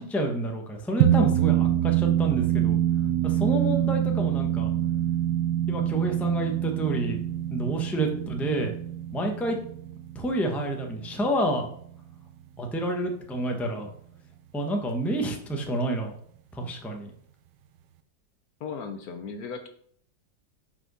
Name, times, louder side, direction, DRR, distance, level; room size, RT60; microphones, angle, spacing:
voice 1, 0.0-2.8 3.2-4.7 5.7-7.2 7.5-8.7 9.1-9.6 10.1-11.7 12.6-13.9 14.5-16.1 16.5-17.1, right 1 dB, ahead, 2 dB, 0.8 m, -28 dB
sound 1, 1.0-11.7, right 11 dB, 80° right, 1.2 m, -26 dB
voice 2, 18.6-19.7, left 5 dB, 65° left, 7 dB, 1.1 m, -36 dB
5.5 x 5.4 x 6.2 m, 0.63 s
omnidirectional pair, 1.9 m